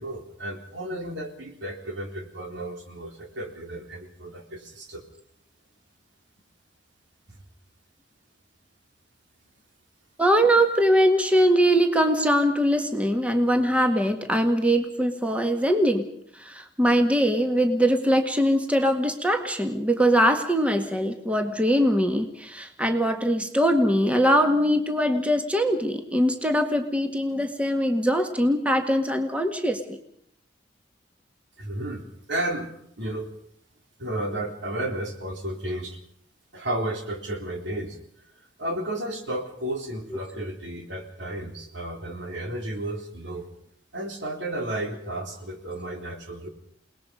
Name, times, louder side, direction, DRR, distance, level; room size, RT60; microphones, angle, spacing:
voice 1, 0.0-5.0 31.6-33.3 34.0-36.0 36.5-38.0 38.6-43.5 43.9-46.5, right 1 dB, 75° right, 3 dB, 3.7 m, -33 dB
voice 2, 10.2-16.0 16.4-30.0, equal, 5° right, 5 dB, 1.7 m, -22 dB
28.5 x 19.5 x 5.2 m, 0.68 s
head